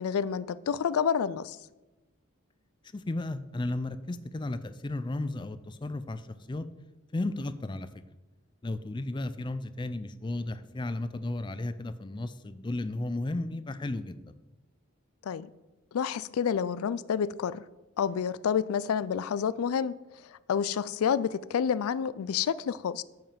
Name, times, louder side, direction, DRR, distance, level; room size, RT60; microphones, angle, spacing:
voice 1, 0.0-1.6 15.3-15.5 15.9-17.6 18.0-20.0 20.5-23.0, left 7 dB, 90° left, 18 dB, 0.4 m, -29 dB
voice 2, 2.9-6.7 7.1-8.0 8.6-14.3, left 2 dB, 20° left, 12 dB, 0.4 m, -34 dB
9.0 x 5.5 x 7.2 m, 1.1 s
head